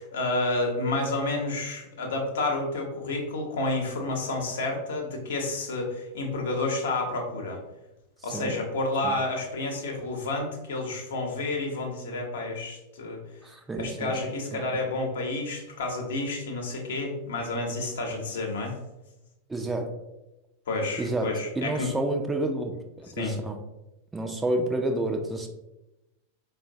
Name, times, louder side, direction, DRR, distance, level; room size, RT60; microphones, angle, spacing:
voice 1, 0.0-7.6 8.2-13.2 13.8-18.7 20.7-21.9 23.2-23.4, left 2 dB, 60° left, 1 dB, 0.7 m, -30 dB
voice 2, 13.4-14.1 14.5-14.6 19.5-19.9 21.0-22.7 23.2-23.6 24.1-25.5, right 1 dB, 10° right, 3 dB, 0.4 m, -29 dB
4.3 x 2.1 x 2.6 m, 0.97 s
figure-of-eight pair, 90°, 0 cm